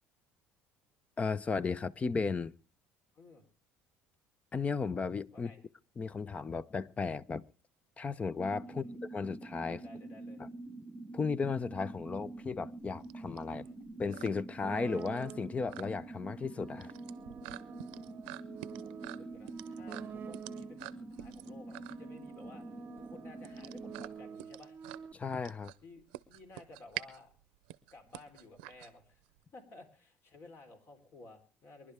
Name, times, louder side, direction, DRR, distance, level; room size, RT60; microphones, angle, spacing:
voice 1, 1.2-2.5 4.5-5.5 6.0-7.4 8.0-9.8 11.1-13.6 14.0-16.9 25.1-25.7, left 4 dB, 25° left, 0.7 m, -35 dB
voice 2, 3.1-3.5 5.3-5.6 8.7-9.0 9.8-10.4 13.4-13.8 16.9-17.1 17.5-18.3 18.8-24.7 25.8-27.3 27.9-29.2 29.5-31.9, left 2 dB, 50° left, 3.9 m, -55 dB
sound 1, 8.4-24.1, right 2 dB, 15° right, 1.1 m, -46 dB
sound 2, 11.7-29.4, right 18 dB, 90° right, 0.7 m, -48 dB
sound 3, 14.6-15.7 16.5-21.0 21.7-25.1, right 7 dB, 40° right, 0.8 m, -48 dB
24.5 x 11.0 x 3.5 m
supercardioid pair, 90°, 5 cm